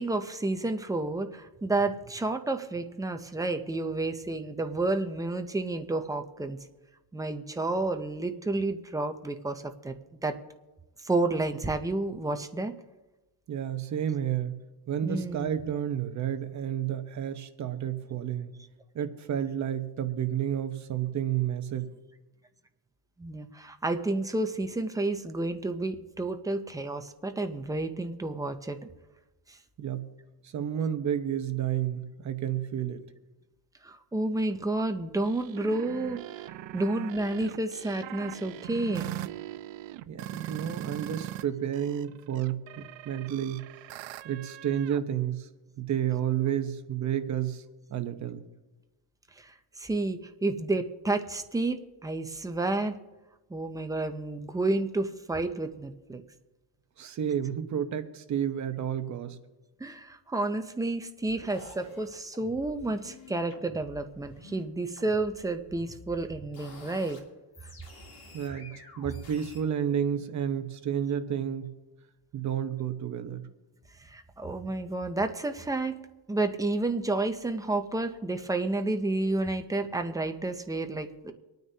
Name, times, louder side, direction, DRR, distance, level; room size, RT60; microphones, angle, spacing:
voice 1, 0.0-6.6 7.1-9.9 10.2-10.3 11.0-12.7 15.0-15.6 23.2-28.8 33.8-39.1 49.4-52.9 53.5-56.2 59.8-67.2 74.0-75.9 76.3-81.3, right 2 dB, 10° right, 6 dB, 0.3 m, -30 dB
voice 2, 13.5-14.6 14.9-18.6 18.9-21.9 29.8-30.1 30.4-33.0 40.1-43.7 44.2-45.5 45.8-47.6 47.9-48.4 57.0-59.4 68.3-71.7 72.3-73.5, right 9 dB, 35° right, 8 dB, 0.8 m, -31 dB
sound 1, 35.2-41.4 41.7-45.0, right 14 dB, 65° right, 0.7 m, -40 dB
sound 2, 61.2-64.6 65.0-67.2 67.5-69.6, left 2 dB, 45° left, 2.8 m, -50 dB
25.5 x 9.3 x 2.7 m, 1.1 s
cardioid pair, 150°, 50 cm